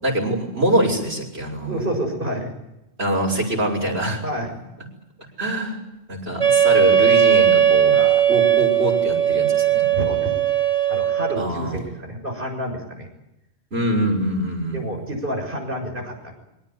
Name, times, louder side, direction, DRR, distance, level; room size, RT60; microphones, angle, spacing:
voice 1, 0.0-1.8 3.0-4.2 5.4-5.8 6.1-7.9 8.3-9.9 11.4-11.8 13.7-14.8, right 1 dB, 85° right, 0 dB, 6.5 m, -24 dB
voice 2, 1.6-2.5 4.2-4.6 7.9-8.3 9.9-10.4 10.9-13.1 14.7-16.4, equal, 60° right, 3 dB, 6.9 m, -29 dB
Wind instrument woodwind instrument, 6.4-11.5, right 9 dB, 30° right, 2.5 m, -18 dB
24.0 x 18.5 x 9.6 m, 0.90 s
omnidirectional pair, 1.0 m